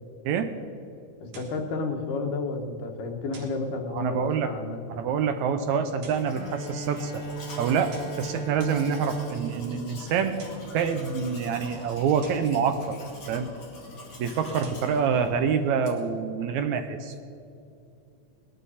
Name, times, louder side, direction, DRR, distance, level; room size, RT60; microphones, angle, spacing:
voice 1, 1.2-4.8, left 3 dB, 75° left, 3 dB, 2.8 m, -31 dB
sound 1, 1.3-1.7 3.3-3.7 5.9-6.4 7.9-8.3 10.2-10.8 12.2-12.6 14.4-15.0, right 4 dB, 90° right, 3.3 m, -48 dB
voice 2, 3.9-4.5 4.9-7.2 7.6-10.4 10.7-13.0 13.3-13.5 14.2-17.2, right 6 dB, 75° right, 8 dB, 1.9 m, -26 dB
Domestic sounds home sounds, 6.1-16.2, left 2 dB, 45° left, 3.1 m, -45 dB
Bowed string instrument, 6.3-11.2, right 4 dB, 50° right, 4.9 m, -37 dB
20.5 x 12.5 x 4.2 m, 2.6 s
omnidirectional pair, 3.7 m